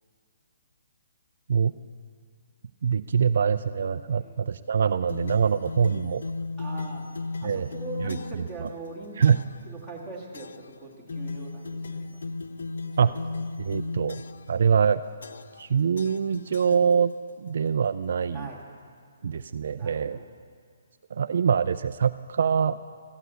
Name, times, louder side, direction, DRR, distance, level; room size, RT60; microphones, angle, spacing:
voice 1, 2.8-6.2 7.4-7.7 8.1-8.2 8.6-8.7 9.2-9.4 13.0-13.1 13.6-14.2 14.5-15.0 15.6-17.1 17.4-18.5 19.2-20.2 21.1-22.8, right 7 dB, 50° right, 11 dB, 0.3 m, -24 dB
voice 2, 4.1-4.4 6.6-7.1 7.4-9.3 9.6-12.2 13.0-13.1 18.3-18.6 19.8-20.3, right 3 dB, 5° left, -3 dB, 2.1 m, -41 dB
sound 1, 5.1-8.5 9.2-9.6 10.3-10.7 11.1-14.5 15.2-15.7 16.0-17.3, left 3 dB, 70° left, 0.6 m, -36 dB
14.0 x 11.5 x 8.1 m, 2.1 s
hypercardioid pair, 175°, 0 cm